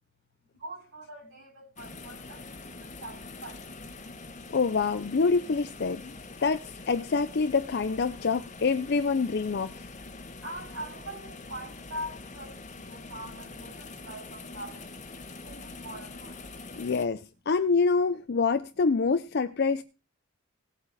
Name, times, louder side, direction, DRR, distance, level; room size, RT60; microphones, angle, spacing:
voice 1, 0.5-3.9 10.4-14.9 15.4-16.5, right 1 dB, 80° right, 7.6 m, -43 dB
sound 1, 1.8-17.1, left 3 dB, 35° left, 1.3 m, -44 dB
voice 2, 4.5-6.1 6.4-9.9 16.8-19.8, left 4 dB, 50° left, 0.5 m, -26 dB
17.5 x 7.9 x 4.1 m
head